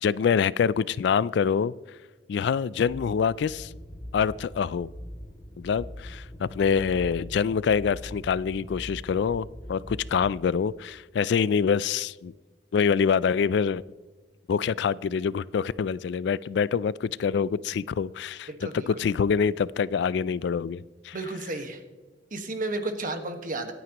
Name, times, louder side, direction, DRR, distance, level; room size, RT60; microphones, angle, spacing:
voice 1, 0.0-1.7 2.3-3.7 4.1-4.9 5.6-12.3 12.7-13.8 14.5-21.2, left 6 dB, 65° left, 0.3 m, -25 dB
sound 1, 2.9-10.2, equal, 25° left, 2.2 m, -42 dB
voice 2, 18.5-19.0 21.1-21.8 22.3-23.7, right 2 dB, 50° right, 1.5 m, -33 dB
24.5 x 9.2 x 3.0 m
head